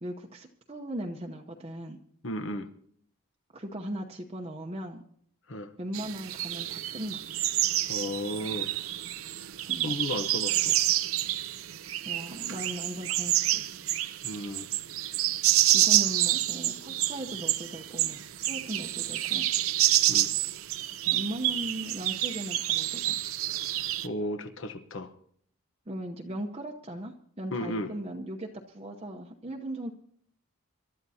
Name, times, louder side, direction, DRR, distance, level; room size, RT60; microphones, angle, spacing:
voice 1, 0.0-2.0 3.5-5.0 5.8-7.2 9.7-10.0 12.0-13.7 15.7-19.5 21.1-23.2 25.9-29.9, right 1 dB, 25° right, 1 dB, 0.8 m, -38 dB
voice 2, 2.2-2.7 5.5-5.7 7.9-8.7 9.8-10.8 14.2-14.7 20.1-20.3 24.0-25.1 27.5-27.9, left 1 dB, 60° left, 10 dB, 1.0 m, -34 dB
sound 1, 5.9-24.1, right 14 dB, 75° right, 0.6 m, -28 dB
27.0 x 12.5 x 2.8 m, 0.63 s
head